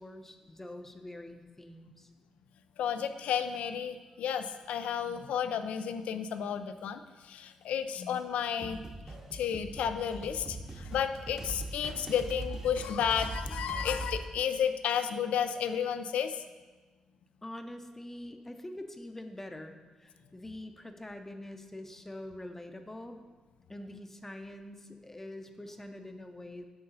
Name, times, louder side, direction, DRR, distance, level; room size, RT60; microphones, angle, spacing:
voice 1, 0.0-2.1 17.4-23.2 23.7-26.6, left 1 dB, 15° left, 6 dB, 0.6 m, -45 dB
voice 2, 2.8-8.8 9.1-16.4, left 8 dB, 90° left, 9 dB, 0.4 m, -32 dB
sound 1, 8.6-14.2, right 2 dB, 30° right, 1.0 m, -41 dB
7.8 x 5.5 x 4.0 m, 1.3 s
cardioid pair, 75°, 2 cm